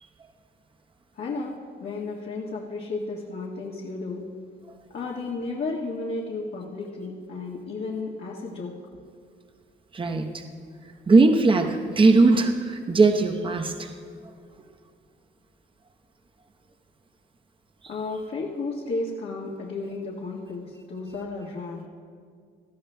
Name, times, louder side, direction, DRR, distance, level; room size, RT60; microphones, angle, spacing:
voice 1, 1.1-4.3 4.9-8.7 17.9-21.9, left 3 dB, 60° left, -4 dB, 1.6 m, -33 dB
voice 2, 9.9-10.4 11.1-13.9, right 3 dB, 25° right, 4 dB, 0.9 m, -19 dB
19.0 x 13.0 x 2.3 m, 2.1 s
cardioid pair, 90°, 20 cm